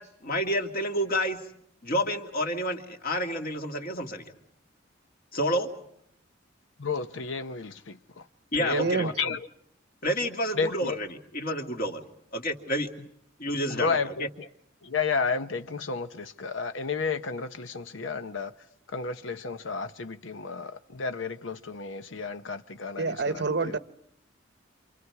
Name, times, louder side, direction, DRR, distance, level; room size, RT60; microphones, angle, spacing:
voice 1, 0.0-1.4 1.8-4.3 5.3-5.7 8.5-9.1 10.0-11.1 11.3-12.0 12.3-12.9 13.4-14.0, equal, 45° left, 2.4 m, -29 dB
voice 2, 6.8-8.3 8.6-9.5 10.5-11.0 13.7-14.5 14.8-18.5 18.9-23.8, left 5 dB, 75° left, 0.9 m, -32 dB
voice 3, 8.7-9.1 23.0-23.8, right 3 dB, 55° right, 0.9 m, -27 dB
29.0 x 27.0 x 4.8 m
head